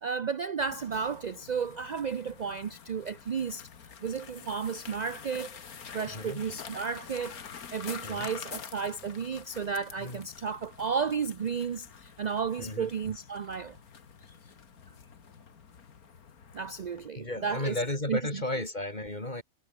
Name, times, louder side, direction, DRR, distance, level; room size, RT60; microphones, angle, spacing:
voice 1, 0.0-3.7 4.0-5.5 5.9-7.4 7.7-13.8 16.5-17.8 18.1-18.4, right 6 dB, 55° right, 0.4 m, -33 dB
sound 1, 0.6-17.1, left 7 dB, 75° left, 2.1 m, -47 dB
voice 2, 6.1-6.4 8.0-8.3 10.0-10.2 12.6-12.9 14.9-15.0 17.1-19.4, left 1 dB, 30° left, 4.4 m, -34 dB
omnidirectional pair, 1.6 m